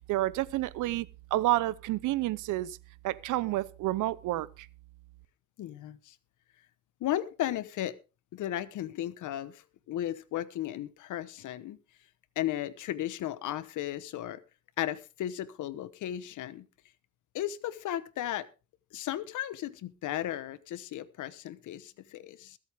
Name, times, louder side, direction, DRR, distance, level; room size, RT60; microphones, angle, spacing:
voice 1, 0.1-2.8 3.0-4.7, right 16 dB, 85° right, 0.7 m, -30 dB
voice 2, 5.6-6.2 7.0-8.0 8.3-11.8 12.4-14.4 14.8-16.7 17.3-18.5 18.9-22.6, left 12 dB, 80° left, 1.1 m, -35 dB
21.5 x 8.0 x 3.5 m
cardioid pair, 90°, 30 cm